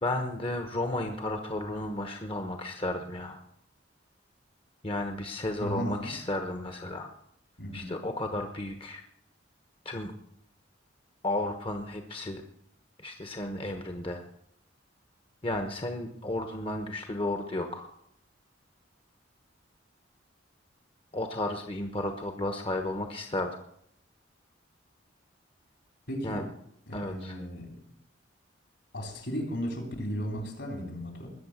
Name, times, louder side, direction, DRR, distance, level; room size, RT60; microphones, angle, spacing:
voice 1, 0.0-3.4 4.8-7.1 7.7-9.0 9.8-10.1 11.2-12.4 13.0-14.2 15.4-17.9 21.1-23.5 26.2-26.4 26.9-27.3, left 1 dB, 30° left, 6 dB, 1.1 m, -33 dB
voice 2, 5.6-6.2 7.6-7.9 26.1-26.5 26.9-27.8 28.9-31.3, equal, 65° left, 4 dB, 3.6 m, -35 dB
20.5 x 7.2 x 7.3 m, 0.72 s
head